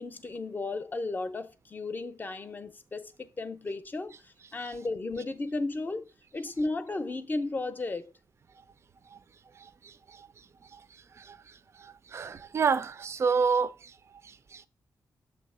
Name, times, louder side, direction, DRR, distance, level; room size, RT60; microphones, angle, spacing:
voice 1, 0.0-8.0, left 2 dB, 25° left, 0.6 m, -34 dB
voice 2, 9.6-10.3 10.7-10.8 11.2-11.4 11.8-13.9 14.2-14.7, right 5 dB, 40° right, 0.4 m, -30 dB
7.0 x 2.8 x 5.4 m
wide cardioid pair, 145°, 7 cm